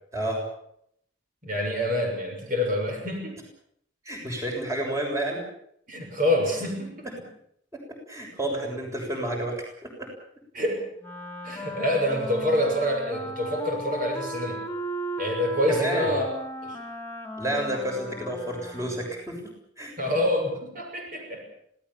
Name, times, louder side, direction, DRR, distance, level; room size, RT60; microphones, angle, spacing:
voice 1, 1.4-3.4 5.9-7.2 10.5-10.9 11.4-14.6 15.2-16.2 16.6-16.8 20.0-21.5, left 1 dB, 45° right, 2 dB, 6.7 m, -26 dB
voice 2, 4.1-5.4 7.7-7.8 8.1-10.1 15.7-16.1 17.4-19.4 19.8-20.0, right 1 dB, 15° right, 1 dB, 6.9 m, -30 dB
Wind instrument woodwind instrument, 11.0-19.2, equal, 10° left, 2.7 m, -37 dB
27.5 x 18.0 x 7.3 m, 0.71 s
head